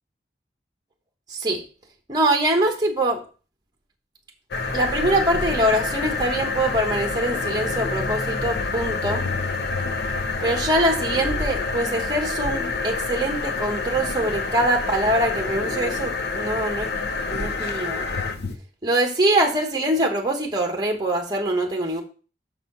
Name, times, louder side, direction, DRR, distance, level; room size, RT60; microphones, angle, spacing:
voice 1, 1.3-1.6 2.1-3.2 4.7-9.3 10.4-16.9 17.3-18.0 18.8-22.0, right 1 dB, 25° right, 2 dB, 1.0 m, -23 dB
sound 1, 4.5-18.6, left 3 dB, 65° left, 0.7 m, -27 dB
6.3 x 4.2 x 5.3 m, 0.36 s
head